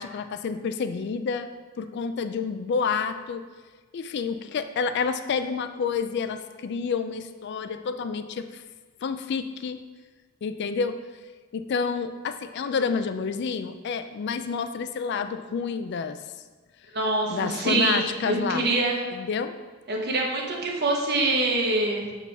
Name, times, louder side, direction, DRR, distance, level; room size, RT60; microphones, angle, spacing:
voice 1, 0.0-1.5 1.8-3.4 3.9-8.6 9.0-9.8 10.4-11.0 11.5-16.2 17.3-18.7 19.1-19.5, left 5 dB, 55° left, 10 dB, 0.3 m, -29 dB
voice 2, 16.9-19.0 19.9-22.1, right 2 dB, 55° right, -1 dB, 1.1 m, -25 dB
5.7 x 4.5 x 4.6 m, 1.3 s
head